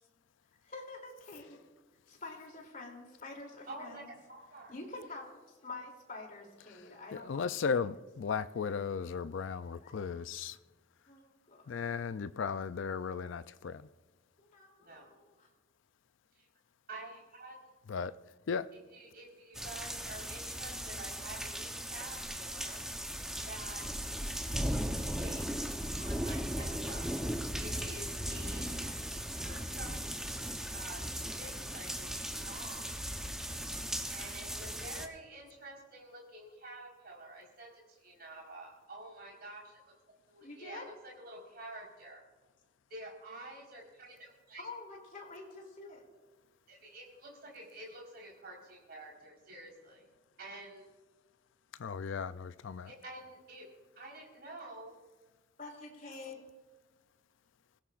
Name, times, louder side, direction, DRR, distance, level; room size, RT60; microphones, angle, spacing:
voice 1, 0.6-1.6 2.1-4.1 4.7-7.9 9.6-10.2 11.1-11.6 14.4-15.5 40.4-40.9 44.6-46.0 55.6-56.4, left 3 dB, 45° left, 0 dB, 3.0 m, -47 dB
voice 2, 3.7-4.7 14.8-15.1 16.4-16.5 16.9-17.6 18.9-22.8 23.4-23.8 24.6-25.7 26.0-27.1 27.6-28.9 29.3-29.9 30.7-31.0 31.3-32.9 34.1-39.9 40.3-42.2 42.9-44.6 46.7-50.1 50.4-50.8 52.8-53.7 54.0-54.9, right 2 dB, 50° right, -2 dB, 4.3 m, -49 dB
voice 3, 6.7-10.6 11.7-13.9 17.9-18.1 18.5-18.7 51.8-52.9, left 6 dB, 75° left, 13 dB, 0.4 m, -36 dB
sound 1, 19.5-35.1, equal, 5° right, 0.8 m, -37 dB
27.0 x 16.5 x 2.5 m, 1.2 s
head